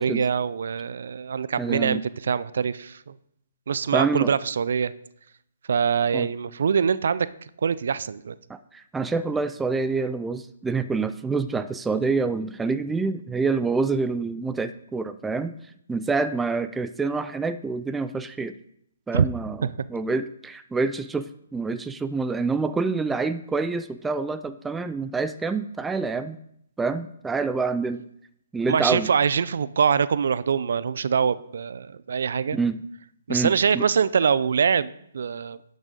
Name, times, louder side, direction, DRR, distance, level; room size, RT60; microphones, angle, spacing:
voice 1, 0.0-3.1 3.7-4.9 5.7-7.3 7.6-8.3 19.1-19.3 19.6-19.7 28.6-32.6 33.3-35.6, right 6 dB, 65° right, 17 dB, 0.5 m, -24 dB
voice 2, 1.6-2.0 3.9-4.4 6.1-6.3 8.5-15.5 15.9-18.5 19.1-26.4 26.8-28.0 28.5-29.1 32.5-32.8 33.3-33.9, right 4 dB, 10° right, 10 dB, 0.4 m, -27 dB
10.5 x 6.3 x 5.2 m, 0.71 s
hypercardioid pair, 145°, 0 cm